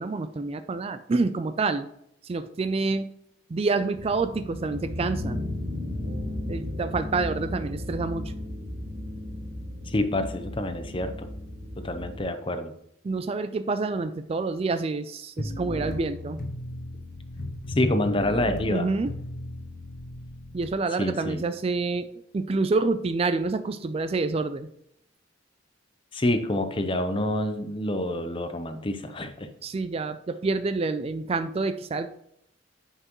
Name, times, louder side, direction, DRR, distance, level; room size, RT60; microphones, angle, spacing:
voice 1, 0.0-1.9 2.2-3.1 3.5-5.4 6.5-8.3 13.0-16.4 18.7-19.1 20.5-22.1 22.3-24.7 29.6-32.1, right 3 dB, 30° right, 11 dB, 0.3 m, -27 dB
sound 1, 4.0-12.2, left 1 dB, 80° right, 1.8 m, -34 dB
voice 2, 9.9-11.3 11.8-12.7 17.8-18.9 21.0-21.4 26.1-29.5, left 1 dB, 25° left, 9 dB, 0.6 m, -27 dB
sound 2, 15.4-20.7, left 1 dB, 45° left, 1.1 m, -35 dB
9.6 x 5.6 x 3.0 m, 0.75 s
head